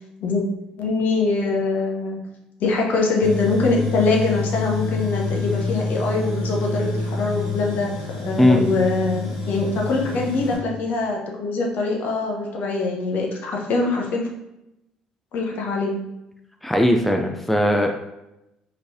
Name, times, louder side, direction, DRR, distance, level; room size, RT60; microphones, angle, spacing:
voice 1, 0.8-2.2 2.6-14.3 15.3-16.1, left 3 dB, 55° left, 0 dB, 0.8 m, -23 dB
Tools, 3.2-10.5, left 3 dB, 80° left, 1.3 m, -27 dB
voice 2, 16.6-17.9, left 1 dB, 5° left, 3 dB, 0.5 m, -18 dB
4.4 x 3.1 x 2.6 m, 0.88 s
figure-of-eight pair, 50°, 4 cm